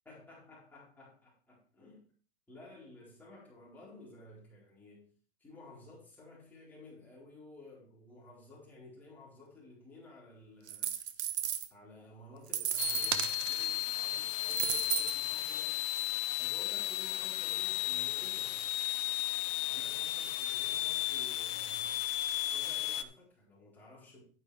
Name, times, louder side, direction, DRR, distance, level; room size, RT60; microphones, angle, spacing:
voice 1, 0.0-2.0 2.5-5.0 5.4-10.9 11.7-15.8 16.4-19.2 19.7-22.0 22.3-24.2, left 2 dB, 5° left, 4.4 m, -54 dB
sound 1, 10.7-11.7 12.5-13.7 14.4-15.2 16.0-16.1, right 11 dB, 80° right, 1.2 m, -34 dB
sound 2, 12.8-23.0, left 15 dB, 35° left, 0.7 m, -34 dB
11.0 x 9.8 x 3.4 m
supercardioid pair, 160°, 33 cm